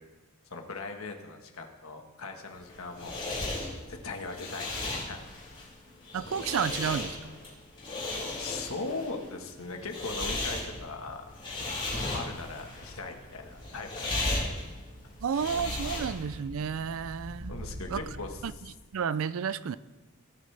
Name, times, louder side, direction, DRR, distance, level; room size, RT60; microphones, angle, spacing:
voice 1, 0.5-3.2 3.9-5.2 8.4-11.2 12.1-14.5 17.5-18.4, left 3 dB, 70° left, 4 dB, 1.5 m, -39 dB
sound 1, 2.5-16.4, left 2 dB, 25° left, 4.9 m, -36 dB
voice 2, 6.1-7.3 15.2-17.5 17.9-18.0 18.4-19.8, right 7 dB, 65° right, 17 dB, 0.4 m, -31 dB
sound 2, 10.2-18.6, right 1 dB, 85° right, 1.2 m, -46 dB
18.0 x 10.0 x 3.4 m, 1.2 s
head